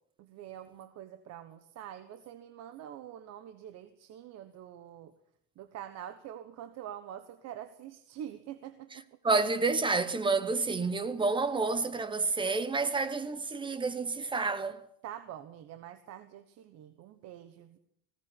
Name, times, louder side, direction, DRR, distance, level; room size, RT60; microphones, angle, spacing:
voice 1, 0.2-5.1 5.6-9.1 15.0-17.8, right 10 dB, 35° right, 1.3 m, -45 dB
voice 2, 8.9-14.8, right 3 dB, 10° right, 0.9 m, -29 dB
20.0 x 17.0 x 10.0 m
cardioid pair, 175°, 47 cm